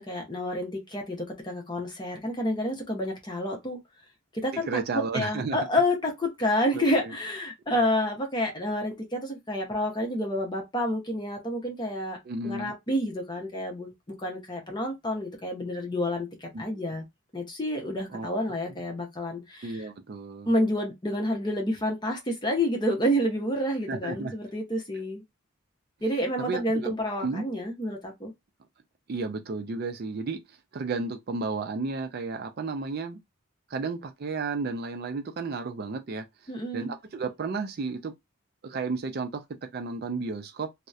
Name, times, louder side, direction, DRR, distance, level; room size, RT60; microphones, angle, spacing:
voice 1, 0.0-3.8 4.3-4.8 5.1-12.2 12.4-13.9 14.2-17.0 17.3-19.9 20.5-25.2 26.0-28.3 36.5-36.9, left 1 dB, 20° left, 0.6 m, -29 dB
voice 2, 4.5-5.6 6.7-7.1 12.2-12.7 16.5-16.8 18.1-18.4 19.6-20.5 23.9-24.3 26.5-26.9 27.2-27.4 29.1-30.4 30.7-33.2 33.7-36.2 36.7-38.1 38.6-39.4 39.7-40.7, right 4 dB, 50° right, 0.4 m, -32 dB
2.7 x 2.0 x 2.3 m
head